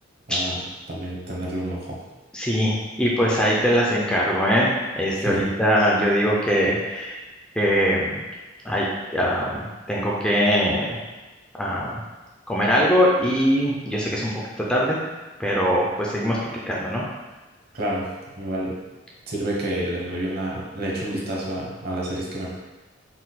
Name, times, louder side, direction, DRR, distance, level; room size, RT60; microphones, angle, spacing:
voice 1, 0.3-0.6 0.9-2.0 5.1-5.5 17.7-18.0 18.3-18.7 19.3-22.5, right 1 dB, 50° right, -4 dB, 1.0 m, -29 dB
voice 2, 2.3-7.2 7.6-8.2 8.6-11.0 11.6-12.0 12.5-14.3 14.7-15.0 15.4-16.4 16.7-17.0, equal, 5° left, -4 dB, 0.4 m, -22 dB
4.2 x 2.2 x 4.0 m, 1.2 s
head